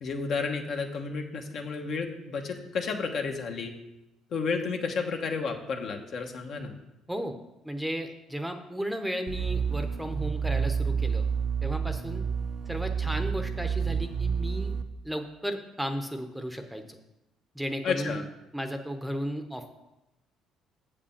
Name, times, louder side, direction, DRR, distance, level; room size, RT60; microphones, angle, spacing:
voice 1, 0.0-3.7 4.3-6.7 17.8-18.2, left 4 dB, 60° left, 3 dB, 1.2 m, -31 dB
voice 2, 7.6-11.3 11.6-12.2 12.7-14.7 15.0-17.0 17.5-18.2 18.5-19.7, equal, 5° right, 6 dB, 0.8 m, -34 dB
sound 1, 9.3-14.8, right 6 dB, 55° right, 0.7 m, -29 dB
7.6 x 5.1 x 7.2 m, 0.94 s
cardioid pair, 100°, 0 cm